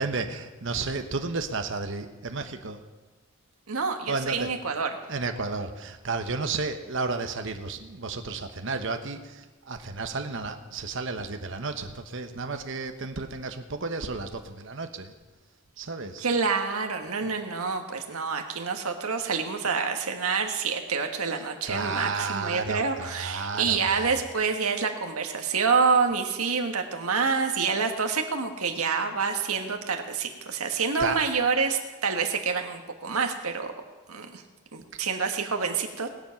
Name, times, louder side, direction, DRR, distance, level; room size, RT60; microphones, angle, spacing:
voice 1, 0.0-2.8 4.1-4.5 5.1-15.1 15.8-16.2 17.2-17.3 21.6-24.1 31.0-31.2, right 3 dB, 55° right, 7 dB, 1.0 m, -32 dB
voice 2, 3.7-4.9 16.2-33.7 34.1-34.4 34.7-36.1, right 5 dB, 80° right, 4 dB, 1.5 m, -27 dB
20.0 x 7.3 x 5.8 m, 1.2 s
head